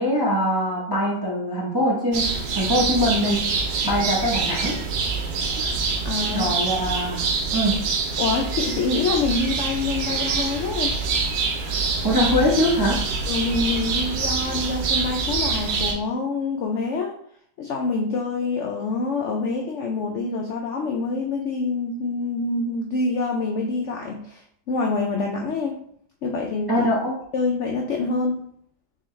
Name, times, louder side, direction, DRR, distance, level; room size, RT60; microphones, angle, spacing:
voice 1, 0.0-3.6 3.8-4.8 6.3-7.2 7.5-7.8 12.0-13.0 26.7-27.1, equal, 20° right, -5 dB, 0.6 m, -22 dB
sound 1, 2.1-15.9, right 4 dB, 90° right, 1.4 m, -25 dB
voice 2, 6.0-6.5 8.2-11.0 13.3-17.1 17.6-25.8 26.2-26.9 27.3-28.4, left 3 dB, 80° left, 1 dB, 0.6 m, -26 dB
3.9 x 3.8 x 3.1 m, 0.65 s
omnidirectional pair, 1.9 m